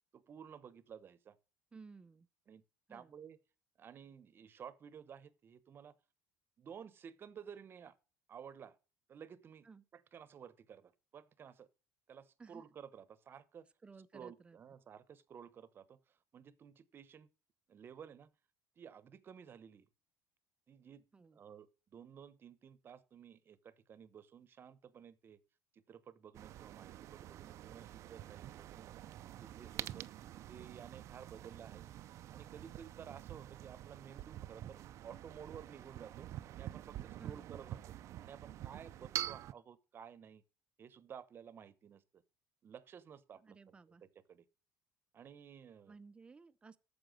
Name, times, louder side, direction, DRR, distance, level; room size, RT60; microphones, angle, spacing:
voice 1, 0.1-1.4 2.5-2.6 2.9-3.4 3.8-5.9 6.6-8.0 8.3-8.8 9.1-9.7 9.9-11.7 12.1-13.7 14.1-17.3 17.7-18.3 18.8-19.9 20.7-21.0 21.3-25.4 25.7-28.8 29.4-30.1 30.5-31.8 32.3-37.9 38.2-40.4 40.8-42.2 42.6-44.4 45.1-46.0, right 7 dB, 40° right, 1.0 m, -54 dB
voice 2, 1.7-2.3 2.9-3.1 9.6-9.8 12.4-12.6 13.8-14.6 21.1-21.4 37.2-37.5 43.4-44.0 45.9-46.8, right 4 dB, 20° right, 0.6 m, -56 dB
sound 1, 26.3-39.5, right 13 dB, 55° right, 0.6 m, -47 dB
9.2 x 7.0 x 6.4 m
cardioid pair, 110°, 6 cm